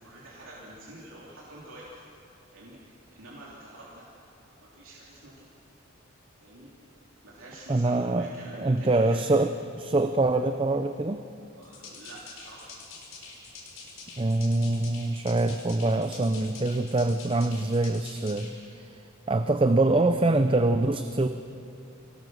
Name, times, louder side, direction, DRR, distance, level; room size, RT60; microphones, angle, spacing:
voice 1, 0.0-2.0 2.5-4.1 4.6-5.4 6.4-6.7 7.2-9.2 11.6-12.8 18.4-18.6, right 1 dB, 70° right, -6 dB, 3.2 m, -47 dB
voice 2, 7.7-8.3 8.6-9.5 9.8-11.2 14.2-19.0 19.3-21.3, right 2 dB, 25° right, 8 dB, 0.5 m, -24 dB
sound 1, 11.6-18.5, left 4 dB, 65° left, 5.0 m, -46 dB
27.5 x 18.5 x 6.3 m, 2.8 s
head